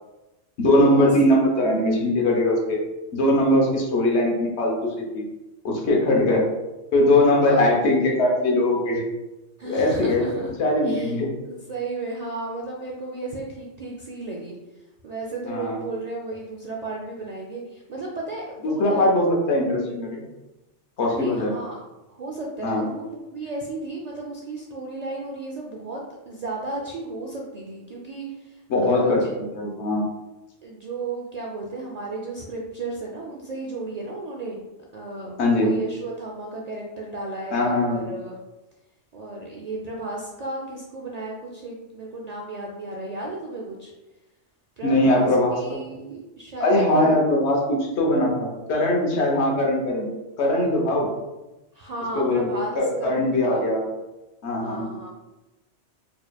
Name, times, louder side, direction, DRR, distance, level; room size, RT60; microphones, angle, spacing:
voice 1, 0.6-2.8 3.1-5.2 5.6-6.5 6.9-9.0 9.6-11.3 15.5-15.8 18.6-20.2 21.0-21.5 22.6-22.9 28.7-29.2 29.5-30.0 35.4-35.7 37.5-38.1 44.8-45.6 46.6-50.1 50.4-51.1 52.1-53.8 54.4-55.0, left 1 dB, 70° left, -1 dB, 1.1 m, -21 dB
voice 2, 7.4-7.8 9.6-10.5 10.8-14.6 15.0-19.0 21.0-21.8 22.2-29.3 30.6-34.6 34.9-38.4 39.1-43.9 44.8-47.2 51.7-53.7 54.6-55.1, right 2 dB, 65° right, -2 dB, 0.4 m, -34 dB
4.3 x 3.0 x 2.2 m, 1.0 s
omnidirectional pair, 1.2 m